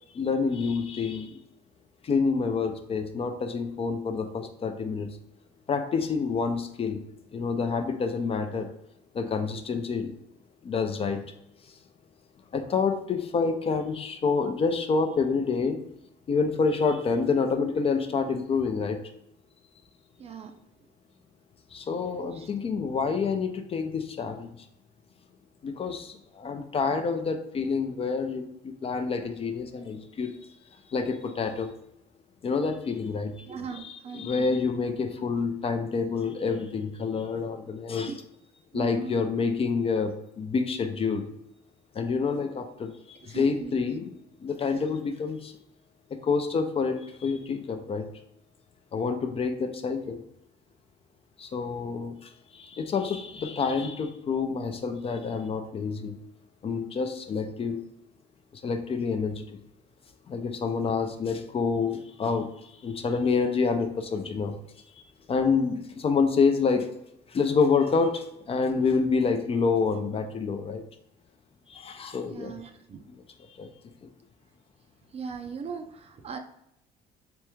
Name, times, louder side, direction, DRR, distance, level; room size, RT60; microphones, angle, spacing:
voice 1, 0.1-1.4 2.0-5.1 5.7-7.0 7.3-8.7 9.1-10.1 10.6-11.2 12.5-15.8 16.3-19.0 21.7-24.5 25.6-30.4 30.9-31.7 32.4-33.3 33.7-38.1 38.7-41.3 41.9-44.1 44.4-45.5 46.2-48.0 48.9-50.2 51.4-56.1 56.6-57.8 58.6-59.5 60.3-62.5 62.8-64.5 65.3-66.9 67.3-70.8 71.7-72.5 73.6-73.7, left 5 dB, 35° left, 7 dB, 0.4 m, -27 dB
voice 2, 20.2-20.6 22.3-22.5 33.5-34.6 38.1-38.2 38.7-39.2 43.2-43.7 72.3-73.0 75.1-76.4, right 6 dB, 35° right, 6 dB, 0.5 m, -38 dB
3.4 x 3.3 x 3.0 m, 0.79 s
cardioid pair, 110°, 17 cm